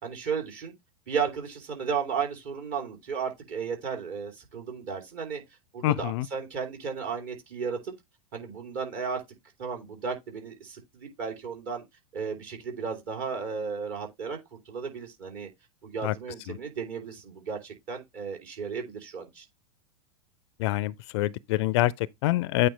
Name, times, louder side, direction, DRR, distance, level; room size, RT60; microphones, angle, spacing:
voice 1, 0.0-0.7 1.1-5.4 5.7-7.9 8.3-9.2 9.6-11.8 12.1-15.5 15.8-19.4, right 6 dB, 50° right, 3.1 m, -34 dB
voice 2, 5.8-6.3 16.0-16.1 16.5-16.6 20.6-22.7, left 16 dB, 50° left, 0.4 m, -26 dB
8.7 x 4.1 x 3.2 m
figure-of-eight pair, 90°, 18 cm